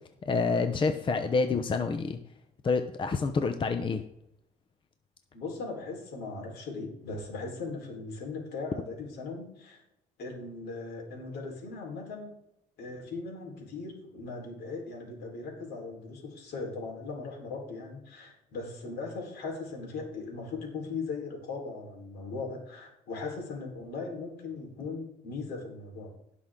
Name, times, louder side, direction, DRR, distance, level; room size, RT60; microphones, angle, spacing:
voice 1, 0.2-2.2 2.6-4.0, left 4 dB, 30° left, 8 dB, 0.8 m, -27 dB
voice 2, 5.3-9.8 10.2-12.4 12.8-26.1, left 3 dB, 70° left, 0 dB, 4.2 m, -39 dB
17.5 x 6.1 x 3.8 m, 0.79 s
cardioid pair, 110°, 17 cm